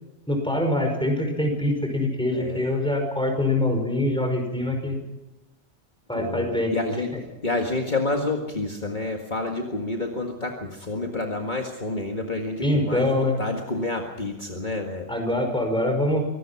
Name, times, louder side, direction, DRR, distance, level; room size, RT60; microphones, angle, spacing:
voice 1, 0.3-5.0 6.1-6.7 7.1-7.2 12.6-13.4 15.1-16.3, left 1 dB, 5° left, 3 dB, 5.3 m, -24 dB
voice 2, 2.3-2.6 6.1-6.5 6.7-7.1 7.4-15.1, left 2 dB, 45° left, 1 dB, 2.0 m, -28 dB
25.5 x 17.5 x 5.9 m, 1.0 s
omnidirectional pair, 1.1 m